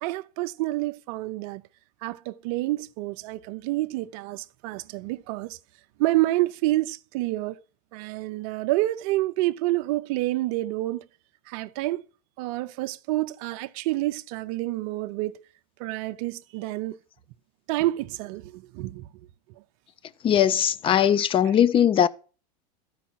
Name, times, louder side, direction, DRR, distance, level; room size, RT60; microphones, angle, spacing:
voice 1, 0.0-1.6 2.0-5.6 6.0-7.6 7.9-11.1 11.5-12.0 12.4-15.4 15.8-17.0 17.7-19.1, right 17 dB, 55° right, 0.5 m, -28 dB
voice 2, 20.2-22.1, left 9 dB, 25° left, 0.5 m, -20 dB
12.0 x 4.6 x 5.6 m
supercardioid pair, 120°, 21 cm